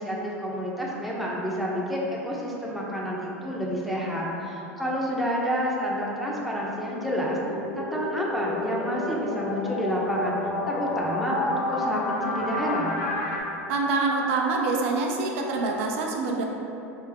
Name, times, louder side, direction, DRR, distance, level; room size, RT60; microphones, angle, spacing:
voice 1, 0.0-7.4 7.8-10.4 10.7-12.9, equal, ahead, -5 dB, 0.6 m, -29 dB
sound 1, 6.8-13.4, left 2 dB, 65° left, 0.6 m, -30 dB
voice 2, 13.7-16.4, right 3 dB, 60° right, 0 dB, 0.5 m, -25 dB
3.3 x 2.7 x 3.4 m, 3.0 s
figure-of-eight pair, 80°, 8 cm